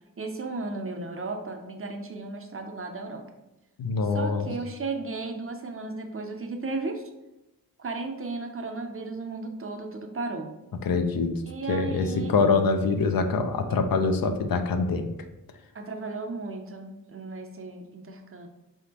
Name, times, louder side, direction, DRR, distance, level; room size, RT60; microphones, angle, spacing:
voice 1, 0.2-3.2 4.1-7.1 7.8-10.5 11.5-12.3 15.7-18.5, right 3 dB, 40° right, 4 dB, 0.5 m, -35 dB
voice 2, 3.8-4.5 10.8-11.3 11.7-15.1, left 4 dB, 70° left, 7 dB, 0.5 m, -24 dB
4.0 x 3.5 x 2.9 m, 0.94 s
wide cardioid pair, 115°, 36 cm